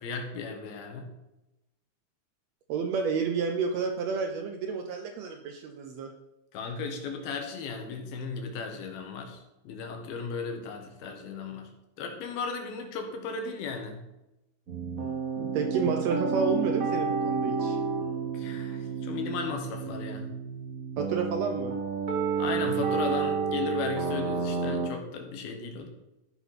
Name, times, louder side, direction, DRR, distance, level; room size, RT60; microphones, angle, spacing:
voice 1, 0.0-1.1 6.5-11.7 12.0-14.0 18.3-20.3 22.4-25.9, left 5 dB, 90° left, 4 dB, 3.3 m, -36 dB
voice 2, 2.7-6.1 15.4-17.8 21.0-21.8, right 5 dB, 85° right, 5 dB, 1.4 m, -30 dB
sound 1, 14.7-24.9, right 5 dB, 45° right, 1.0 m, -30 dB
13.0 x 6.1 x 5.9 m, 0.93 s
omnidirectional pair, 4.1 m